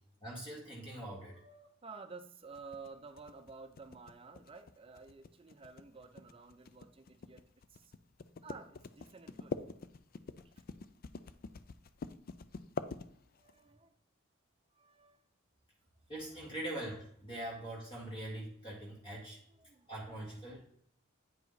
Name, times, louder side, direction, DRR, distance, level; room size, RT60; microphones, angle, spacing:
voice 1, 0.2-1.7 16.1-19.4 19.9-20.6, right 1 dB, 25° left, -3 dB, 1.7 m, -43 dB
voice 2, 1.1-1.5 1.8-7.4 7.7-7.9 8.4-9.6 10.6-10.7 13.4-14.0 14.7-15.2 19.5-19.9 20.5-20.6, right 4 dB, 25° right, 8 dB, 0.5 m, -52 dB
sound 1, 2.6-13.6, left 4 dB, 45° left, 0.4 m, -45 dB
9.0 x 4.9 x 4.0 m, 0.67 s
head